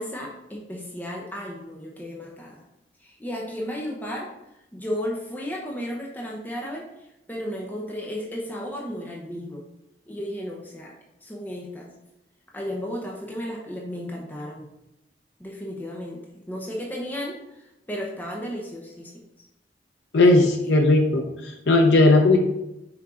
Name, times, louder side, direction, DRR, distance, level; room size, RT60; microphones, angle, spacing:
voice 1, 0.0-2.6 3.0-4.3 4.7-9.6 10.1-10.9 11.2-11.9 12.5-14.7 15.4-19.1 20.3-20.8, equal, 10° left, -2 dB, 0.7 m, -34 dB
voice 2, 20.1-22.4, left 2 dB, 75° left, 2 dB, 0.7 m, -17 dB
6.0 x 4.5 x 3.7 m, 0.90 s
head